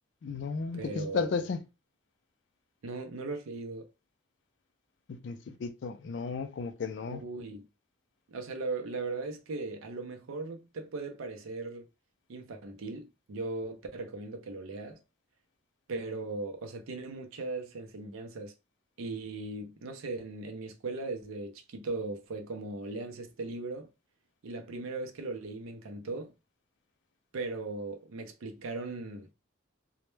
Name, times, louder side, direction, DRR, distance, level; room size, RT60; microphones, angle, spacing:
voice 1, 0.2-1.6 5.1-7.2, left 5 dB, 60° left, 0.3 m, -34 dB
voice 2, 0.7-1.5 2.8-3.9 7.1-7.7 8.3-11.9 12.3-15.0 15.9-18.5 19.0-23.9 24.4-26.3 27.3-29.3, right 3 dB, 90° right, 0.5 m, -38 dB
2.1 x 2.1 x 3.0 m
head